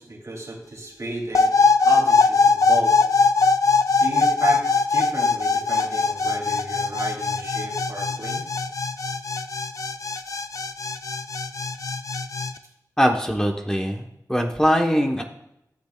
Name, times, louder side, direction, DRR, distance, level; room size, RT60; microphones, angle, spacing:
voice 1, 0.0-1.5 1.8-3.0 4.0-8.5, right 2 dB, 55° right, -1 dB, 2.6 m, -32 dB
sound 1, 1.3-12.5, left 4 dB, 60° left, 0.5 m, -21 dB
voice 2, 13.0-15.2, equal, 10° left, 2 dB, 0.9 m, -22 dB
14.0 x 7.9 x 2.3 m, 0.81 s
wide cardioid pair, 75°, 6 cm